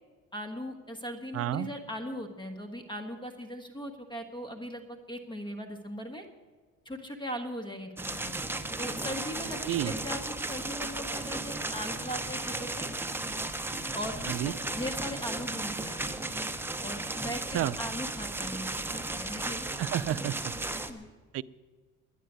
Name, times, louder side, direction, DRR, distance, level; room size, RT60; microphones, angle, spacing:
voice 1, 0.3-6.2 6.8-8.4 8.8-12.9 13.9-16.0 16.8-18.7 18.9-19.7 20.8-21.1, equal, 15° left, 6 dB, 1.4 m, -39 dB
voice 2, 1.3-1.7 9.7-9.9 14.3-14.5 17.5-17.7 19.8-20.5 21.3-21.4, right 12 dB, 50° right, 15 dB, 0.5 m, -30 dB
sound 1, 8.0-20.9, right 2 dB, 5° right, 0.8 m, -35 dB
11.0 x 10.0 x 9.2 m, 1.4 s
cardioid pair, 115°, 30 cm